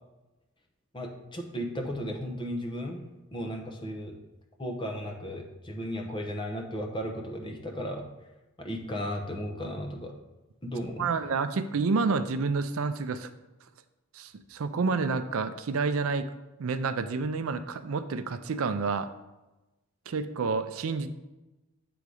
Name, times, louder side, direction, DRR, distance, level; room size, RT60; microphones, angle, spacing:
voice 1, 0.9-3.0 3.3-4.1 4.6-8.0 8.6-10.2 10.6-11.1, equal, 20° left, 3 dB, 0.8 m, -35 dB
voice 2, 11.0-13.3 14.1-16.3 16.6-19.1 20.1-21.1, right 4 dB, 70° right, 11 dB, 0.4 m, -29 dB
8.3 x 3.9 x 4.8 m, 1.0 s
head